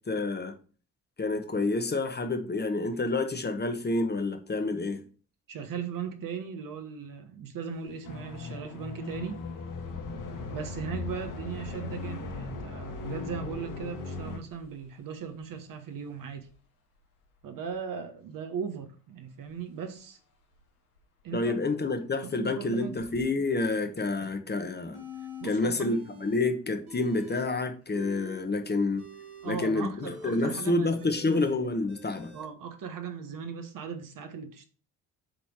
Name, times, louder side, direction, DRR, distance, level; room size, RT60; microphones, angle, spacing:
voice 1, 0.1-0.5 1.2-5.0 21.3-25.0 25.4-29.1 29.4-32.3, left 2 dB, 25° left, 1.0 m, -28 dB
voice 2, 5.5-9.4 10.5-16.5 17.4-20.2 21.2-21.5 22.2-23.0 25.4-26.1 29.4-31.4 32.3-34.7, right 7 dB, 50° right, 1.1 m, -38 dB
Engine, 7.7-7.9 8.4-8.5 9.8-15.5 16.4-16.5 17.0-17.7 19.5-19.6 20.0-20.1 20.6-20.7 21.0-21.5 22.0-22.2 22.8-23.2, left 2 dB, 90° left, 1.0 m, -46 dB
sound 1, 8.0-14.4, left 4 dB, 45° left, 1.3 m, -38 dB
sound 2, 24.9-25.5 25.9-26.4 26.7-27.5 27.8-32.5, left 2 dB, 85° right, 2.0 m, -45 dB
7.5 x 3.4 x 4.6 m
hypercardioid pair, 50°, 43 cm